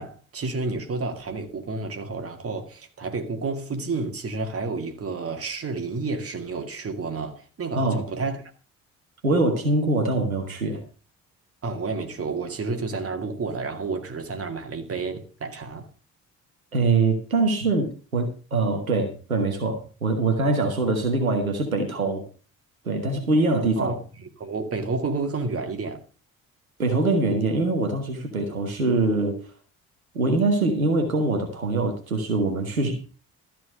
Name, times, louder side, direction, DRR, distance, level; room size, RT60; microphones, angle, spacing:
voice 1, 0.0-8.4 11.6-15.9 23.8-26.0, right 3 dB, 35° right, 2.2 m, -30 dB
voice 2, 7.7-8.0 9.2-10.8 16.7-22.2 22.8-24.0 26.8-29.4 30.1-33.2, right 3 dB, 85° right, 1.3 m, -23 dB
13.0 x 4.5 x 8.3 m
figure-of-eight pair, 45°, 41 cm